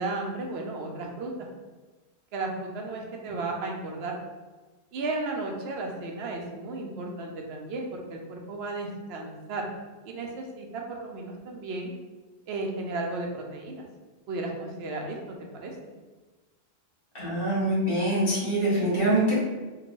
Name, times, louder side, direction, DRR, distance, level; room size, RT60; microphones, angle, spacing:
voice 1, 0.0-1.5 2.3-4.2 4.9-9.7 10.0-11.9 12.5-13.8 14.3-15.7, right 2 dB, 85° right, 1 dB, 0.9 m, -34 dB
voice 2, 17.1-19.4, right 1 dB, 60° left, -8 dB, 1.8 m, -24 dB
3.7 x 2.2 x 3.0 m, 1.3 s
omnidirectional pair, 1.0 m